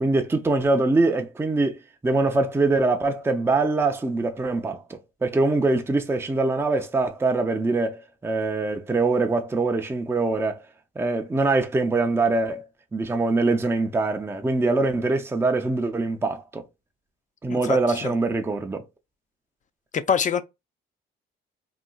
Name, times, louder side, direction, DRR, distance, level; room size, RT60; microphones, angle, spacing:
voice 1, 0.0-10.6 11.0-12.6 12.9-16.6 17.4-18.8, right 3 dB, 10° right, 0.5 m, -23 dB
voice 2, 17.5-18.1 19.9-20.4, left 7 dB, 40° left, 0.5 m, -25 dB
3.9 x 2.3 x 2.3 m
cardioid pair, 90°, 20 cm